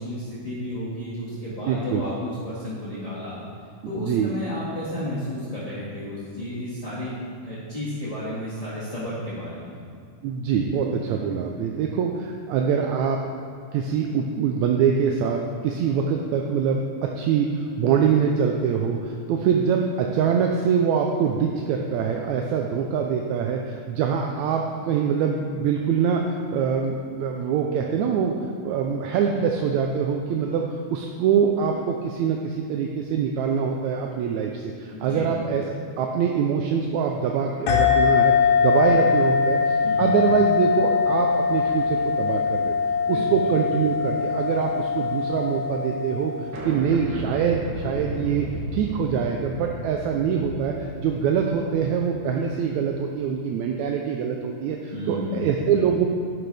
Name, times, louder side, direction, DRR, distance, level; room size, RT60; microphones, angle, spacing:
voice 1, 0.0-3.4 3.8-7.1 7.4-9.8 34.9-35.3 39.8-40.2 43.1-43.3 54.9-55.5, left 1 dB, 15° left, -11 dB, 1.4 m, -32 dB
voice 2, 1.6-2.0 3.8-4.3 10.2-13.2 13.7-28.4 28.6-35.6 36.0-42.8 43.1-46.4 46.6-56.1, right 7 dB, 80° right, 2 dB, 1.9 m, -24 dB
sound 1, 37.7-46.7, left 6 dB, 70° left, 2.2 m, -22 dB
sound 2, 39.7-40.9 41.4-41.5 43.0-43.3 43.6-45.0 45.3-45.4 45.6-45.7 46.0-46.1 46.5-53.2, equal, 50° right, 1.3 m, -37 dB
11.5 x 9.1 x 3.4 m, 2.4 s
omnidirectional pair, 3.4 m